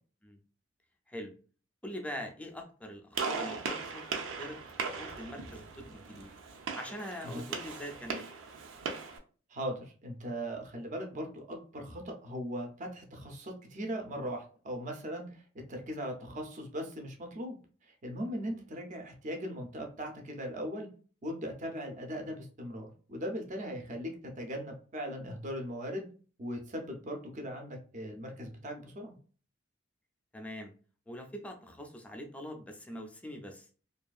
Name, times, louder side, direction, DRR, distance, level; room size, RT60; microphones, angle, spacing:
voice 1, 1.8-4.6 4.8-6.3 6.7-8.3 22.2-22.3 30.3-30.7 31.1-33.7, equal, 5° left, 3 dB, 0.4 m, -43 dB
Gunshot gunfire, 3.1-9.2, right 5 dB, 90° right, 0.5 m, -38 dB
voice 2, 9.5-17.6 17.9-20.9 21.2-26.1 26.4-29.2, equal, 40° right, 3 dB, 0.6 m, -39 dB
2.6 x 2.4 x 2.3 m, 0.40 s
head